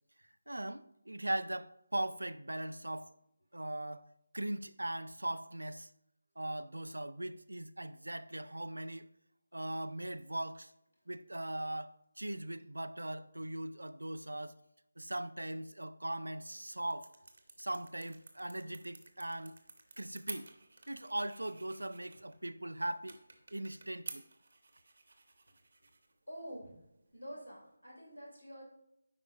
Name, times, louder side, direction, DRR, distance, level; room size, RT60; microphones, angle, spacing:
voice 1, 0.5-3.1 3.5-4.0 4.3-5.9 6.4-9.1 9.5-10.7 11.1-14.5 15.0-17.1 17.6-19.6 20.0-20.5 20.9-23.2 23.5-24.2, right 1 dB, 75° right, 0.3 m, -39 dB
sound 1, 16.2-27.8, right 3 dB, 55° right, 0.8 m, -53 dB
voice 2, 26.3-26.8 27.1-28.6, equal, 85° left, 2.4 m, -47 dB
9.7 x 4.4 x 2.3 m
figure-of-eight pair, 155°, 0 cm